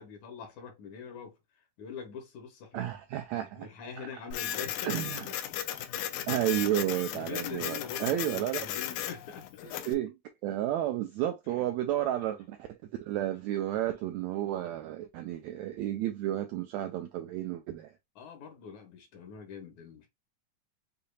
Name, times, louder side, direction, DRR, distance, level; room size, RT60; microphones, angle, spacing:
voice 1, 0.0-1.3 1.8-2.9 3.6-5.9 7.1-9.6 11.5-11.7 18.2-20.1, left 6 dB, 70° left, 2.5 m, -44 dB
voice 2, 2.7-3.7 4.0-4.1 4.8-5.2 6.3-8.7 9.9-17.9, right 12 dB, 80° right, 1.6 m, -32 dB
Printer, 4.3-9.9, left 11 dB, 90° left, 2.2 m, -36 dB
6.7 x 2.8 x 2.3 m
omnidirectional pair, 3.6 m